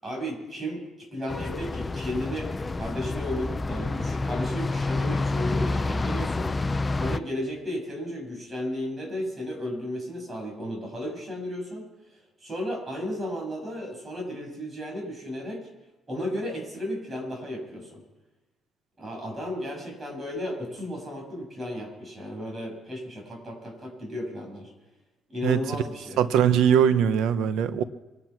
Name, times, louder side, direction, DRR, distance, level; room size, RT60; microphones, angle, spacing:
voice 1, 0.0-11.9 12.4-15.7 16.1-18.0 19.0-24.7 25.3-26.2, equal, 25° right, 0 dB, 7.4 m, -34 dB
sound 1, 1.3-7.2, left 3 dB, 20° left, 0.6 m, -28 dB
voice 2, 26.2-27.8, right 8 dB, 80° right, 12 dB, 1.0 m, -21 dB
23.5 x 10.0 x 6.0 m, 1.1 s
cardioid pair, 110°, 0 cm